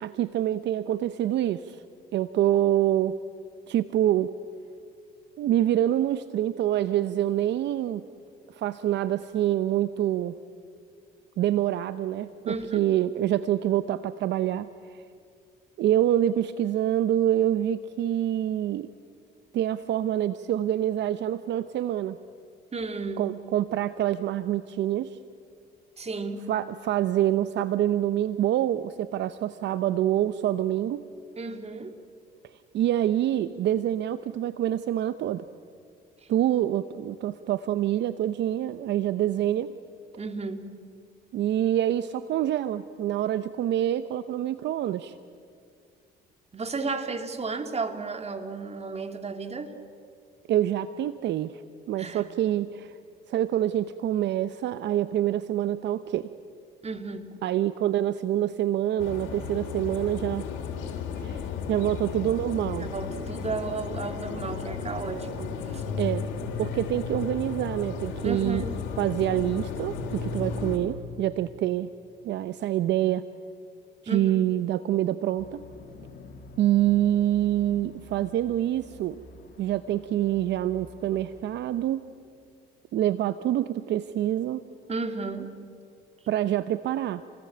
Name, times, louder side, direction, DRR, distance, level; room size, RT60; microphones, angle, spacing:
voice 1, 0.0-1.8 2.1-3.2 3.7-4.3 5.4-8.0 8.5-10.3 11.4-14.7 15.8-18.9 19.5-22.2 23.2-25.2 26.5-31.0 32.7-35.4 36.3-39.7 41.3-45.1 50.5-51.6 51.9-53.0 53.3-56.3 57.4-60.5 61.2-62.9 66.0-66.2 66.6-68.6 69.0-71.9 72.2-73.2 74.0-75.6 76.6-79.2 79.6-82.0 82.9-84.6 86.3-87.2, right 12 dB, 65° right, 13 dB, 0.8 m, -26 dB
voice 2, 12.5-12.8 22.7-23.3 26.0-26.5 31.4-32.0 36.2-36.3 40.2-40.7 46.5-49.7 52.0-52.2 56.8-57.3 62.8-65.8 68.2-68.8 74.1-74.3 84.9-85.5, right 4 dB, 35° right, 7 dB, 2.7 m, -33 dB
sound 1, 59.0-70.8, left 6 dB, 80° left, 3.4 m, -34 dB
sound 2, 75.4-81.4, left 1 dB, 60° left, 2.8 m, -48 dB
29.0 x 20.0 x 8.7 m, 2.3 s
supercardioid pair, 75°, 20 cm